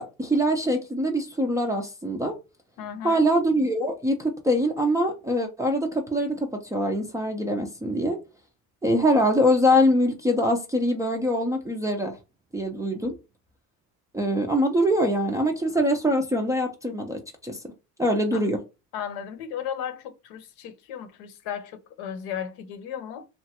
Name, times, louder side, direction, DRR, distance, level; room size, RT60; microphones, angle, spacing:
voice 1, 0.0-2.3 3.0-8.2 8.8-12.2 12.5-13.1 14.1-17.6 18.0-18.6, equal, 10° right, 0.3 m, -23 dB
voice 2, 2.8-3.3 18.3-18.4 18.9-23.3, left 8 dB, 75° left, 0.7 m, -35 dB
3.0 x 2.2 x 2.8 m
supercardioid pair, 100°, 40 cm